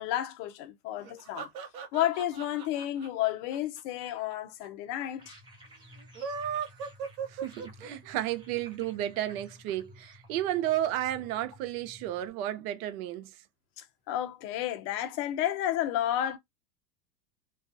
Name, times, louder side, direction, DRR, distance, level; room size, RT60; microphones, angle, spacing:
voice 1, 0.0-1.5 1.9-5.3 13.8-16.4, left 12 dB, 45° left, 0.6 m, -31 dB
sound 1, 1.0-4.3 4.6-4.7 4.9-5.0 6.0-8.1, right 6 dB, 85° right, 0.8 m, -37 dB
sound 2, 5.2-12.3, equal, 10° right, 0.7 m, -54 dB
voice 2, 7.3-13.4, right 13 dB, 60° right, 0.6 m, -32 dB
2.3 x 2.3 x 2.5 m
hypercardioid pair, 110°, 50 cm